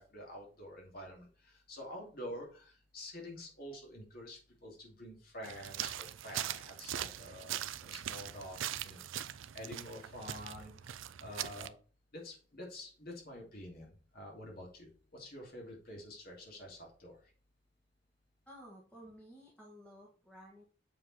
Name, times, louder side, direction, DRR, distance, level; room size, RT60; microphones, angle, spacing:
voice 1, 0.0-11.7 12.1-17.3, left 1 dB, 50° left, -1 dB, 2.7 m, -48 dB
sound 1, 5.4-11.7, right 11 dB, 75° right, 0.5 m, -41 dB
voice 2, 18.5-20.6, equal, 5° left, -4 dB, 1.6 m, -54 dB
7.6 x 4.9 x 4.2 m, 0.39 s
head